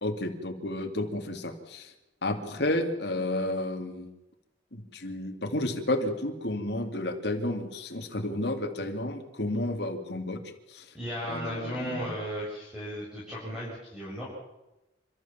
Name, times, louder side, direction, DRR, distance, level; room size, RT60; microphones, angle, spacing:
voice 1, 0.0-1.9 2.2-4.1 4.7-10.4 10.7-10.9 11.3-12.1, left 1 dB, 60° left, 5 dB, 2.5 m, -31 dB
voice 2, 10.9-14.2, equal, 5° right, -8 dB, 7.5 m, -35 dB
29.0 x 14.0 x 7.4 m, 0.97 s
head